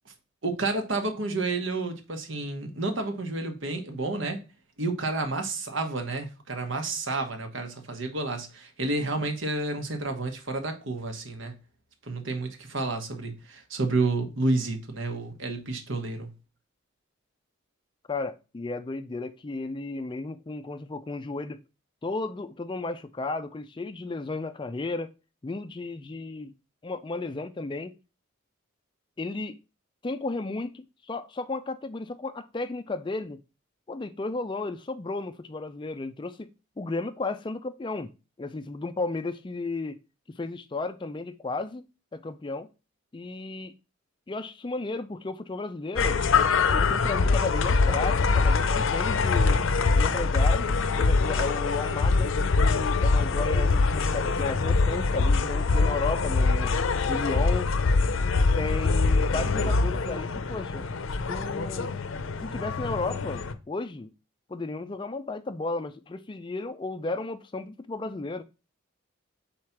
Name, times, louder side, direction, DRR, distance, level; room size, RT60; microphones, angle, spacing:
voice 1, 0.4-4.4 4.8-11.5 12.0-16.3, right 2 dB, 65° right, 1.3 m, -30 dB
voice 2, 18.1-21.6 22.0-25.1 25.4-26.5 26.8-27.9 29.2-29.6 30.0-33.4 33.9-36.5 36.8-38.1 38.4-40.0 40.3-41.9 42.1-42.7 43.1-43.7 44.3-46.2 46.7-49.6 49.9-50.7 51.0-56.7 57.1-57.7 58.6-60.9 61.3-61.9 62.4-64.1 64.5-68.4, left 3 dB, 25° left, 0.4 m, -34 dB
sound 1, 46.0-63.5, left 4 dB, 70° left, 0.6 m, -24 dB
4.8 x 4.2 x 5.8 m
head